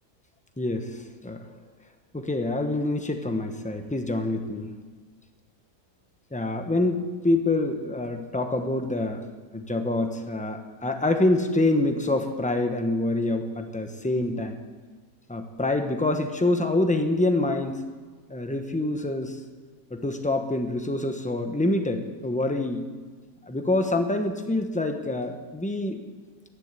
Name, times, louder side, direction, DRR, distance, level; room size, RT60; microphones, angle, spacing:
voice 1, 0.6-0.9 1.2-1.5 2.1-4.7 6.3-9.2 9.5-14.6 15.3-17.8 18.3-19.4 19.9-22.9 23.5-26.0, left 2 dB, 5° left, 6 dB, 0.7 m, -26 dB
13.0 x 11.0 x 8.2 m, 1.4 s
omnidirectional pair, 1.7 m